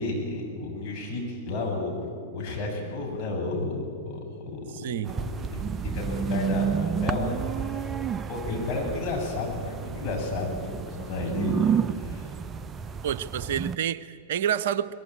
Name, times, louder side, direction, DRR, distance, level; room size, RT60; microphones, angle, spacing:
voice 1, 0.0-7.9 8.3-12.3, left 2 dB, 35° left, 0 dB, 7.7 m, -32 dB
voice 2, 4.7-5.1 13.0-14.9, right 9 dB, 55° right, 12 dB, 0.7 m, -28 dB
sound 1, 5.0-13.8, right 7 dB, 20° right, 0.5 m, -30 dB
23.0 x 20.5 x 9.9 m, 2.2 s
figure-of-eight pair, 100°, 0 cm